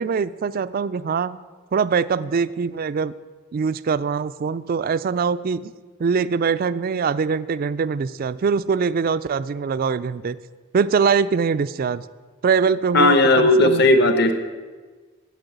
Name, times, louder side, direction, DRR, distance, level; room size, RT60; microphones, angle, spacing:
voice 1, 0.0-1.4 1.7-3.1 3.5-5.7 6.0-10.4 10.7-12.0 12.4-13.9, right 5 dB, 40° right, 16 dB, 0.3 m, -23 dB
voice 2, 12.9-14.3, left 2 dB, 50° left, 8 dB, 1.0 m, -15 dB
9.1 x 7.8 x 8.0 m, 1.4 s
head